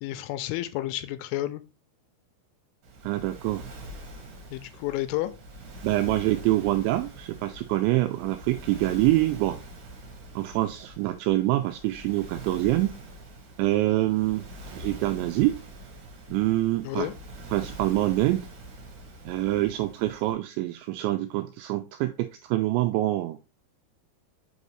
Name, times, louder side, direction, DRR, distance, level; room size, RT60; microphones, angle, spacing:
voice 1, 0.0-1.6 4.5-5.3 13.9-14.1 16.8-17.1, left 15 dB, 85° left, 2.9 m, -31 dB
Waves surf, 2.8-20.3, right 1 dB, 50° right, 2.4 m, -44 dB
voice 2, 3.0-3.6 5.8-9.6 10.4-12.9 13.6-14.4 14.7-15.6 16.3-17.1 17.5-18.4 19.3-23.4, right 16 dB, 90° right, 2.6 m, -25 dB
6.6 x 5.4 x 3.1 m
omnidirectional pair, 5.7 m